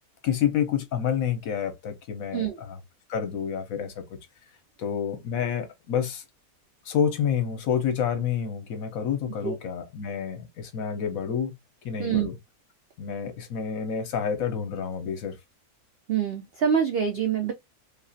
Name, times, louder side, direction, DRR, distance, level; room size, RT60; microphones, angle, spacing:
voice 1, 0.2-2.8 3.1-4.0 4.8-6.2 6.8-11.6 11.8-12.4 13.0-15.4, left 8 dB, 65° left, 1.1 m, -28 dB
voice 2, 16.1-17.5, right 8 dB, 75° right, 0.5 m, -25 dB
3.1 x 2.4 x 2.5 m
omnidirectional pair, 1.6 m